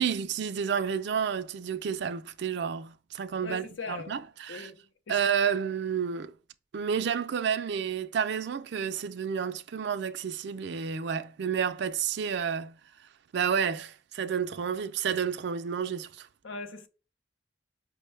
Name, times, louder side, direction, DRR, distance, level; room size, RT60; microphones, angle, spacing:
voice 1, 0.0-4.7 5.1-6.3 6.7-12.7 13.3-16.3, right 7 dB, 65° right, 0.4 m, -30 dB
voice 2, 3.4-4.1 4.5-4.8 5.1-5.2 16.4-16.9, left 4 dB, 90° left, 0.6 m, -39 dB
5.2 x 2.1 x 3.2 m
head